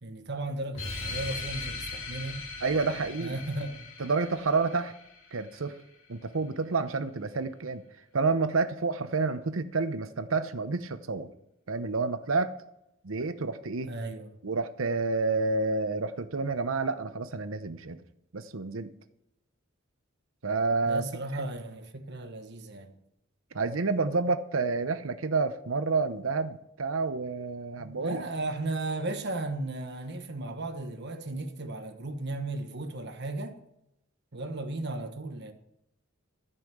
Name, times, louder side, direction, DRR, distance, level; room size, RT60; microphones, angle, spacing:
voice 1, 0.0-2.5 3.2-3.8 13.9-14.3 20.8-22.9 27.8-33.6 34.3-35.5, right 2 dB, 55° right, 1.3 m, -35 dB
sound 1, 0.7-5.8, left 3 dB, 75° left, 2.3 m, -39 dB
voice 2, 2.6-3.4 4.0-4.9 5.3-5.8 6.1-7.8 8.1-11.3 11.7-12.5 13.0-13.9 14.4-18.0 18.3-18.9 20.4-21.1 21.4-21.5 23.5-28.2, right 4 dB, 90° right, 0.9 m, -29 dB
13.5 x 5.6 x 7.9 m
head